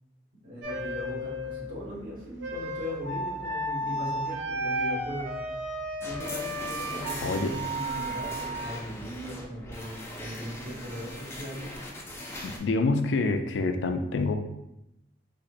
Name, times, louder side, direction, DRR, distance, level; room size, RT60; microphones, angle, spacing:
voice 1, 0.4-5.4 6.0-11.7, equal, 50° right, -6 dB, 1.4 m, -39 dB
sound 1, 0.6-9.3, right 1 dB, 85° right, 0.6 m, -34 dB
sound 2, 6.0-12.6, left 1 dB, 15° left, 0.4 m, -40 dB
voice 2, 7.2-7.5 12.4-14.3, left 3 dB, 85° left, 7 dB, 0.4 m, -26 dB
4.1 x 2.7 x 2.5 m, 0.87 s
head